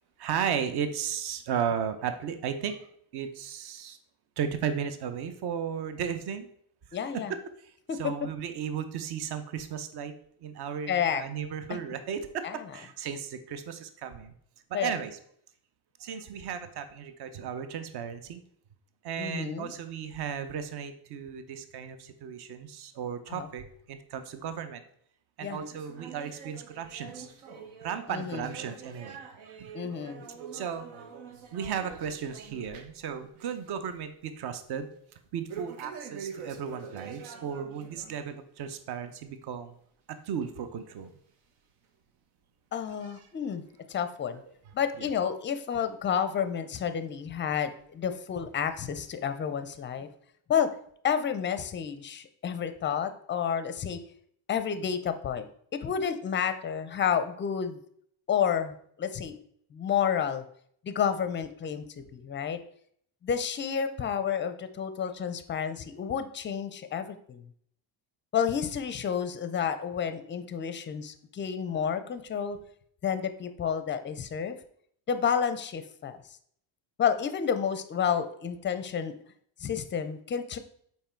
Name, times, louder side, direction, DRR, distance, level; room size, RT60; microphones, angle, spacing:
voice 1, 0.2-2.9 3.1-4.0 4.4-6.5 7.1-7.4 8.0-10.1 10.4-14.3 14.7-15.2 16.0-18.4 19.0-24.8 25.4-27.3 27.8-29.2 29.5-29.7 30.5-30.9 31.5-34.9 35.3-39.7 40.3-41.1 45.0-45.1, right 7 dB, 55° right, 10 dB, 0.8 m, -35 dB
voice 2, 6.9-7.3 7.9-8.1 10.9-11.2 11.7-11.8 12.4-12.7 14.7-14.9 19.2-19.7 23.3-23.5 25.4-25.6 28.1-28.5 29.7-30.2 42.7-43.6 43.9-44.4 44.7-50.1 50.5-50.7 51.0-54.0 54.5-55.5 55.7-57.8 58.3-59.4 59.7-60.4 60.8-62.6 63.2-67.4 68.3-72.6 73.0-74.6 75.1-76.2 77.0-79.1 79.6-80.6, left 7 dB, 25° left, 10 dB, 0.4 m, -30 dB
sound 1, 25.5-33.1 33.3-33.7 34.1-34.2 35.5-38.2 38.6-38.8 39.4-39.5 40.4-40.5 41.3-41.4, right 6 dB, 85° right, 1.2 m, -45 dB
5.7 x 4.5 x 4.4 m, 0.65 s
cardioid pair, 135°, 48 cm